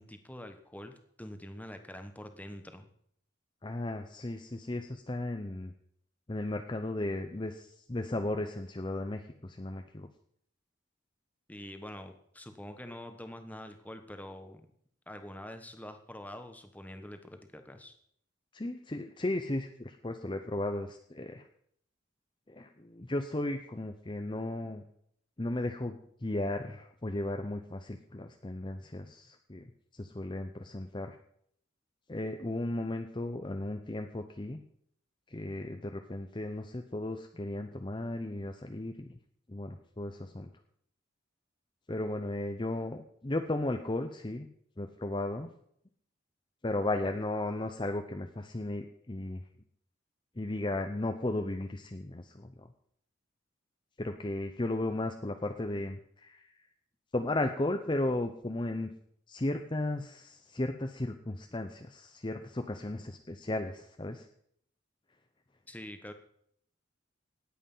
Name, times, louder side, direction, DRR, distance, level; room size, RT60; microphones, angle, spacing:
voice 1, 0.0-2.9 11.5-14.6 15.1-17.9 65.7-66.1, left 1 dB, 10° left, 7 dB, 1.2 m, -45 dB
voice 2, 3.6-5.7 6.3-10.1 18.5-21.4 22.5-24.8 25.4-29.7 29.9-31.2 32.1-34.6 35.3-39.1 39.5-40.5 41.9-44.5 44.8-45.5 46.6-49.4 50.4-52.7 54.0-56.5 57.1-58.9 59.3-64.3, left 1 dB, 25° left, 6 dB, 0.7 m, -35 dB
18.5 x 8.1 x 5.5 m, 0.68 s
head